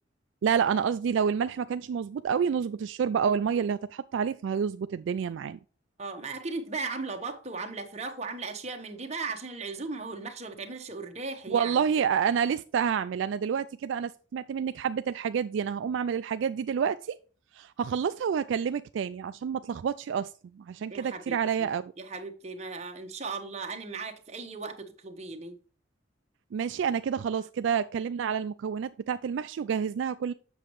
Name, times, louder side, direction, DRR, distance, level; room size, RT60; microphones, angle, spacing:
voice 1, 0.4-5.6 11.5-17.2 17.5-20.3 20.6-21.9 26.5-30.3, right 7 dB, 70° right, 0.3 m, -28 dB
voice 2, 6.0-11.8 20.9-21.7 22.0-25.6, right 4 dB, 35° right, 1.0 m, -37 dB
7.7 x 6.3 x 3.1 m
head